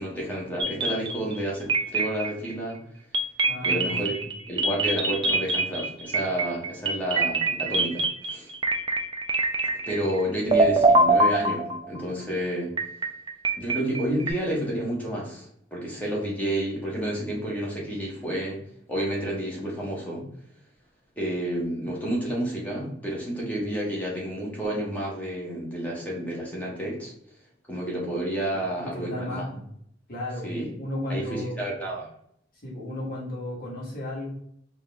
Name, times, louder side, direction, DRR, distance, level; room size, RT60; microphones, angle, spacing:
voice 1, 0.0-2.8 3.6-4.1 4.5-8.5 9.6-12.7 13.6-18.6 18.9-20.3 21.2-27.1 27.7-29.5 30.4-30.7 31.1-32.1, right 1 dB, 10° left, -4 dB, 1.0 m, -30 dB
sound 1, 0.6-1.4 1.7-2.5 3.1-10.2 10.5-12.0 12.8-14.3, right 2 dB, 25° right, 0.3 m, -24 dB
voice 2, 3.5-4.3 28.5-29.7 30.1-31.7 32.6-34.3, left 1 dB, 50° left, -6 dB, 1.3 m, -34 dB
3.8 x 2.5 x 3.4 m, 0.71 s
head